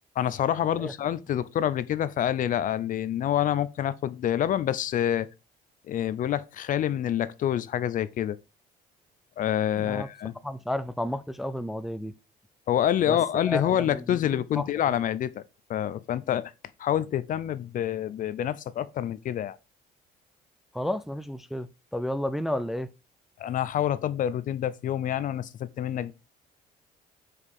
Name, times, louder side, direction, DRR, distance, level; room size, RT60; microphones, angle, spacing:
voice 1, 0.2-5.3 5.9-8.4 9.4-10.3 12.7-15.4 15.7-16.5 16.8-19.6 23.4-26.1, left 10 dB, 50° left, 0.5 m, -27 dB
voice 2, 9.8-10.1 10.4-12.1 13.1-13.2 13.5-14.8 20.7-22.9, left 1 dB, ahead, 0.4 m, -32 dB
5.0 x 4.7 x 5.4 m
cardioid pair, 110°, 17 cm